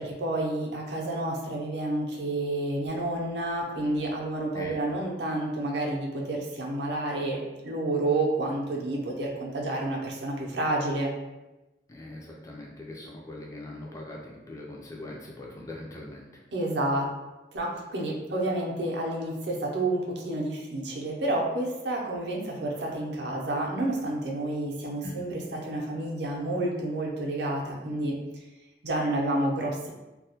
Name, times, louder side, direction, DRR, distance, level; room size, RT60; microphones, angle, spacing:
voice 1, 0.0-11.1 16.5-17.1 17.5-28.2 28.8-29.9, right 1 dB, 80° right, -1 dB, 0.5 m, -29 dB
voice 2, 11.9-16.3 25.0-25.2, left 1 dB, 20° left, -2 dB, 0.3 m, -41 dB
2.3 x 2.1 x 2.7 m, 1.0 s
head